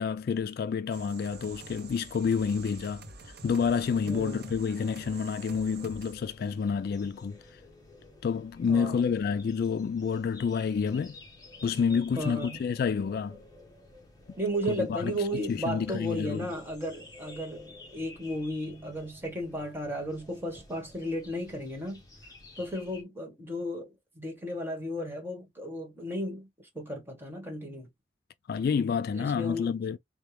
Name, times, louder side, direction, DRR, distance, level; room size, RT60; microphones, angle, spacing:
voice 1, 0.0-7.4 8.2-11.2 11.6-13.4 14.7-16.5 28.5-30.0, left 6 dB, 55° left, 0.3 m, -29 dB
sound 1, 0.9-6.1, right 4 dB, 60° right, 0.7 m, -47 dB
sound 2, 3.7-23.0, left 2 dB, 20° left, 1.2 m, -52 dB
voice 2, 4.1-4.5 8.7-9.0 12.1-12.6 14.4-22.0 22.6-26.5 26.7-27.9 29.1-29.7, equal, 10° right, 1.4 m, -34 dB
4.4 x 2.2 x 3.3 m
head